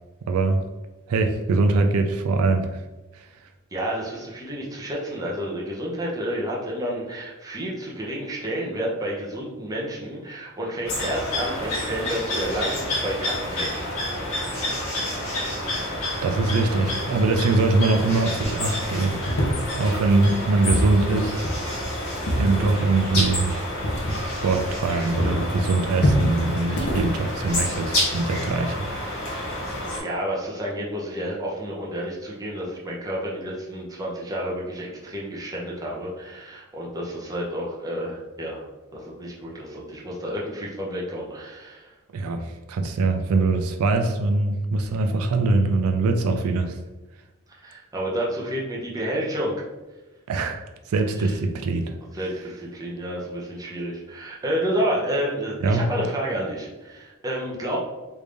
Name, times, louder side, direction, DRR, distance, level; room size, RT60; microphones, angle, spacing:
voice 1, 0.3-0.6 1.1-2.8 3.1-3.3 16.2-19.2 19.7-21.4 22.3-23.5 24.2-29.3 42.1-46.8 50.3-51.9 55.6-55.9, right 3 dB, 80° right, 5 dB, 0.4 m, -23 dB
voice 2, 3.7-13.9 30.0-38.6 38.9-41.9 47.6-49.5 51.1-51.4 52.1-57.8, equal, 15° right, -4 dB, 0.7 m, -30 dB
sound 1, 10.8-30.0, left 1 dB, 80° left, 1.5 m, -29 dB
sound 2, 19.3-24.9 25.2-28.1, equal, 50° left, 0.6 m, -27 dB
3.3 x 2.6 x 3.3 m, 1.1 s
head